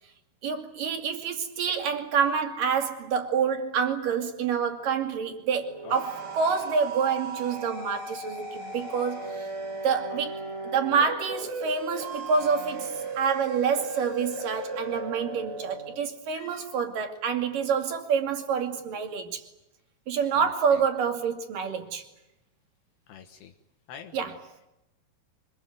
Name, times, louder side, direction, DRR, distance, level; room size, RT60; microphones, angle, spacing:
voice 1, 0.4-9.5 9.8-19.4 20.1-22.0 24.1-24.4, right 6 dB, 55° right, 4.0 m, -27 dB
sound 1, 5.6-16.0, right 3 dB, 90° right, 6.5 m, -36 dB
voice 2, 16.3-16.8 20.3-20.5 23.1-23.5 23.9-24.3, left 8 dB, 75° left, 3.4 m, -45 dB
25.0 x 21.0 x 9.3 m
omnidirectional pair, 4.8 m